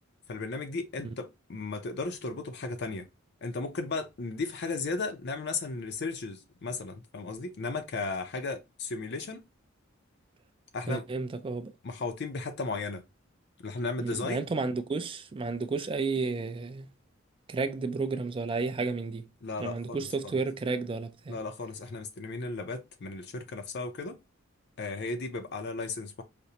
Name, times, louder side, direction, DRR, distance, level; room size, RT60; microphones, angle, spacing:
voice 1, 0.3-3.1 3.4-9.4 10.7-11.1 11.8-13.0 13.6-14.4 19.4-20.3 21.3-24.2 24.8-26.2, left 3 dB, 55° left, 0.5 m, -35 dB
voice 2, 10.9-11.7 14.0-16.9 17.5-19.3 19.6-21.4, right 4 dB, 25° right, 0.3 m, -32 dB
5.0 x 2.0 x 2.8 m
head